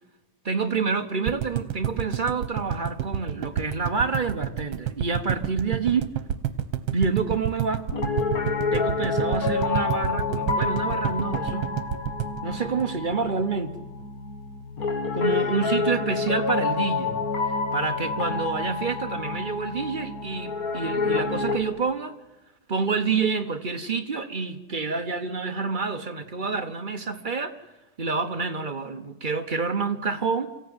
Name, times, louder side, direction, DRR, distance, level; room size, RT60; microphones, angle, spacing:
voice 1, 0.4-6.1 6.9-7.8 8.7-11.7 12.4-13.9 15.1-17.2 17.5-22.1 22.7-27.6 28.0-30.5, right 4 dB, 45° right, 8 dB, 0.6 m, -28 dB
sound 1, 1.3-13.4 13.7-13.8 14.0-14.1, right 10 dB, 80° right, 1.8 m, -29 dB
Piano, 7.9-21.6, left 4 dB, 50° left, 2.0 m, -28 dB
24.5 x 15.0 x 9.5 m, 1.1 s
omnidirectional pair, 2.1 m